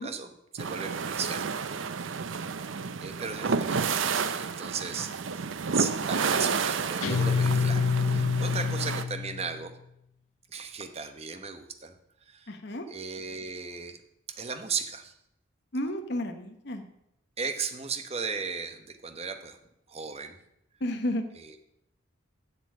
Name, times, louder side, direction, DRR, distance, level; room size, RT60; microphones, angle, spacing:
voice 1, 0.0-1.8 3.0-5.4 5.7-9.8 10.5-12.0 12.2-12.5 12.9-14.0 14.3-15.1 17.4-19.6 19.9-20.4 21.3-21.6, right 5 dB, 30° right, 8 dB, 0.9 m, -36 dB
sound 1, 0.6-9.0, right 5 dB, 70° right, 0.6 m, -31 dB
Guitar, 7.0-9.6, left 5 dB, 80° left, 0.6 m, -27 dB
voice 2, 12.5-12.9 15.7-16.8 20.8-21.2, left 1 dB, 55° left, 6 dB, 0.9 m, -32 dB
7.8 x 7.1 x 8.4 m, 0.80 s
head